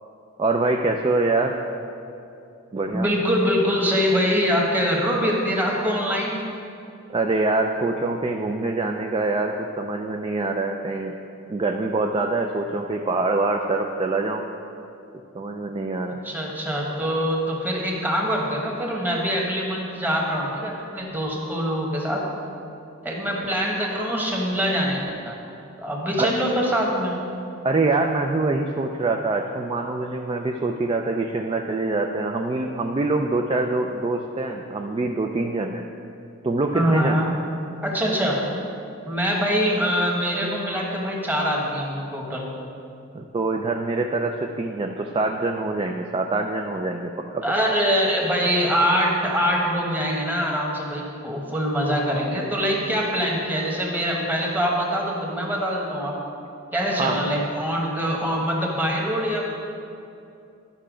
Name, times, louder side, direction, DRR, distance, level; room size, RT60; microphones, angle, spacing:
voice 1, 0.4-1.6 2.7-3.1 7.1-11.2 11.5-14.4 15.3-16.2 26.2-26.3 27.6-35.8 36.4-37.3 43.1-47.4 56.9-57.3, right 3 dB, 25° right, 3 dB, 0.3 m, -25 dB
voice 2, 2.9-6.4 16.2-22.2 23.0-25.4 25.8-27.2 36.7-37.3 37.8-38.4 39.0-42.5 47.4-56.2 56.7-59.4, equal, 10° right, -2 dB, 1.2 m, -24 dB
11.0 x 5.6 x 5.0 m, 2.7 s
head